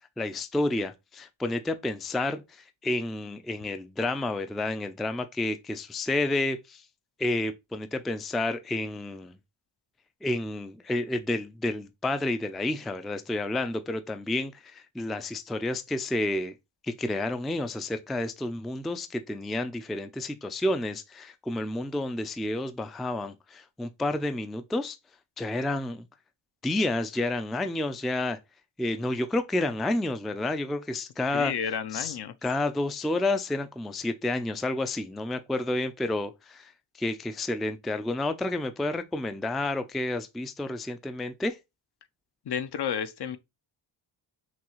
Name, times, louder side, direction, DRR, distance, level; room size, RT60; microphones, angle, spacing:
voice 1, 0.2-6.9 7.2-9.4 10.2-16.5 16.8-25.0 25.4-26.0 26.6-28.4 28.8-31.5 31.9-41.6, left 2 dB, ahead, 0.3 m, -30 dB
voice 2, 31.3-32.3 42.5-43.4, left 7 dB, 55° left, 0.6 m, -31 dB
6.0 x 2.3 x 3.0 m
cardioid pair, 75°, 49 cm